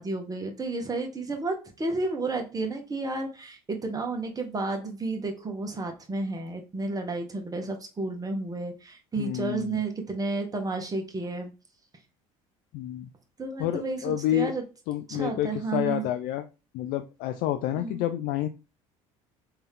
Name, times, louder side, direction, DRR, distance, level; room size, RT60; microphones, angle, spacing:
voice 1, 0.0-11.5 13.4-14.6 15.1-16.0 17.8-18.0, right 3 dB, 20° right, 3 dB, 1.2 m, -32 dB
voice 2, 9.2-9.8 12.7-13.1 13.6-14.5 14.9-16.4 16.7-18.5, left 13 dB, 60° left, 8 dB, 0.4 m, -29 dB
3.4 x 2.8 x 3.5 m, 0.30 s
hypercardioid pair, 65°, 17 cm